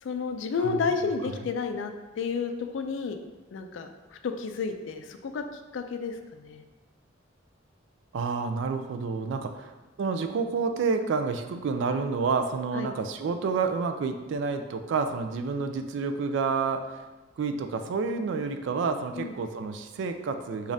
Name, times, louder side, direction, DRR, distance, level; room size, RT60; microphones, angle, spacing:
voice 1, 0.0-3.2 3.5-5.4 5.7-6.6 12.7-12.9 19.1-19.3, left 5 dB, 70° left, 7 dB, 0.3 m, -31 dB
voice 2, 8.1-9.7 10.0-16.9 17.4-20.7, right 4 dB, 65° right, 8 dB, 0.3 m, -29 dB
5.1 x 2.4 x 2.6 m, 1.2 s
head